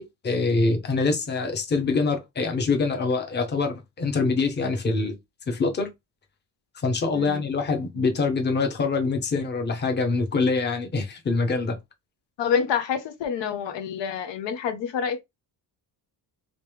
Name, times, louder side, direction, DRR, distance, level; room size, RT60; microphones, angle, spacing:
voice 1, 0.0-5.2 5.5-5.9 6.8-11.8, left 4 dB, 25° left, 0.8 m, -25 dB
voice 2, 12.4-15.2, left 7 dB, 85° left, 0.9 m, -27 dB
3.1 x 3.0 x 3.4 m
cardioid pair, 170°, 42 cm